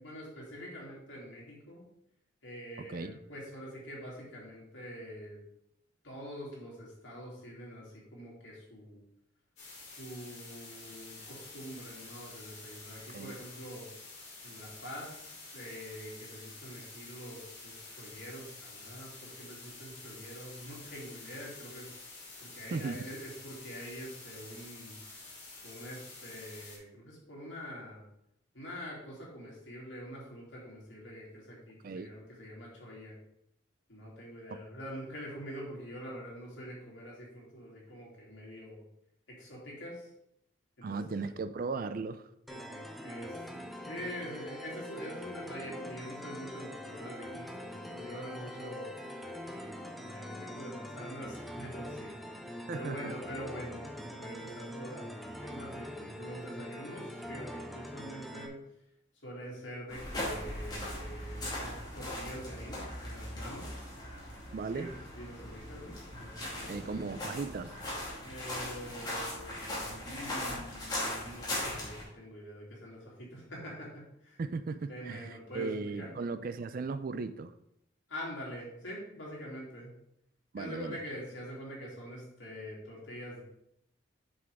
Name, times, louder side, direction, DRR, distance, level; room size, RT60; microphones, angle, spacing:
voice 1, 0.0-1.8 2.4-5.4 6.0-9.0 9.9-13.9 14.4-21.9 22.4-25.0 25.6-28.0 28.5-33.1 33.9-38.8 39.3-40.1 40.8-41.3 42.5-43.4 43.9-49.1 49.5-52.2 52.4-58.6 59.2-63.7 64.7-67.2 68.2-74.4 74.9-76.1 78.1-79.9 80.6-83.4, equal, 70° left, -4 dB, 2.9 m, -45 dB
voice 2, 2.8-3.2 13.1-13.3 22.7-23.0 31.8-32.1 40.8-42.3 52.7-53.1 64.5-64.9 66.7-67.8 74.4-77.5 80.5-81.0, right 4 dB, 45° right, 12 dB, 0.4 m, -37 dB
sound 1, 9.6-26.8, left 3 dB, 35° left, 3.2 m, -49 dB
sound 2, 42.5-58.5, equal, ahead, 0.6 m, -43 dB
sound 3, 59.9-72.0, left 1 dB, 20° left, 2.3 m, -39 dB
7.6 x 6.1 x 3.5 m, 0.78 s
head